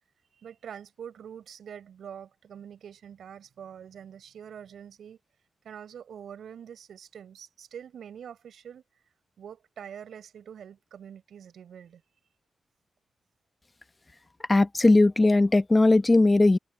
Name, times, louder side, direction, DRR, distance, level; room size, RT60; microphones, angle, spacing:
voice 1, 0.4-5.2 5.6-8.8 9.4-12.0, right 8 dB, 90° right, 6.9 m, -45 dB
voice 2, 14.5-16.6, left 2 dB, 30° left, 0.9 m, -19 dB
cardioid pair, 65°, 0 cm